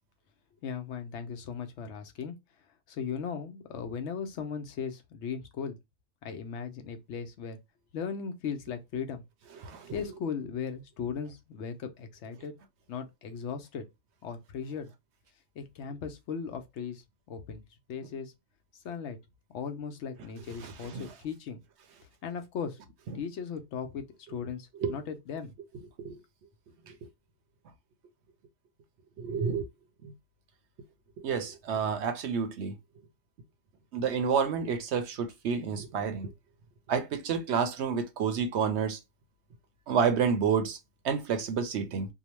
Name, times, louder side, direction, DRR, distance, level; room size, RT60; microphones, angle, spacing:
voice 1, 0.6-2.4 2.9-5.8 6.2-7.6 7.9-9.2 9.9-12.5 12.9-13.8 14.2-14.9 15.6-17.0 17.3-17.6 17.9-18.3 18.8-19.2 19.5-21.6 22.2-22.8 23.1-25.5, left 6 dB, 70° left, 0.8 m, -37 dB
voice 2, 20.6-21.1 24.8-24.9 26.0-26.1 29.2-29.6 31.2-32.7 33.9-36.3 36.9-39.0 39.9-40.8 41.0-42.1, right 6 dB, 65° right, 0.8 m, -29 dB
2.8 x 2.1 x 2.9 m
omnidirectional pair, 1.3 m